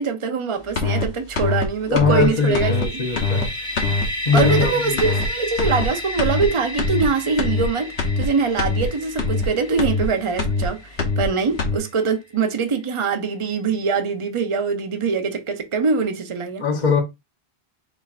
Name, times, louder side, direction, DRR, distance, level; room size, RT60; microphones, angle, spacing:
voice 1, 0.0-2.7 4.3-16.6, right 5 dB, 35° right, 0.7 m, -23 dB
sound 1, 0.7-1.0 1.3-1.6 1.9-2.2 2.5-2.8 3.1-3.4 3.8-4.0 4.4-4.6 5.0-5.2 5.6-5.8 6.2-6.4 6.8-7.0 7.4-7.6 8.0-8.3 8.6-8.8 9.2-9.4 9.8-10.0 10.4-10.7 11.0-11.2 11.6-11.8, left 4 dB, 80° left, 1.4 m, -22 dB
voice 2, 1.9-3.5 4.2-5.0 16.6-17.0, left 5 dB, 45° left, 1.2 m, -21 dB
sound 2, 2.2-11.9, left 1 dB, 5° left, 1.0 m, -32 dB
4.5 x 4.4 x 2.4 m
omnidirectional pair, 1.1 m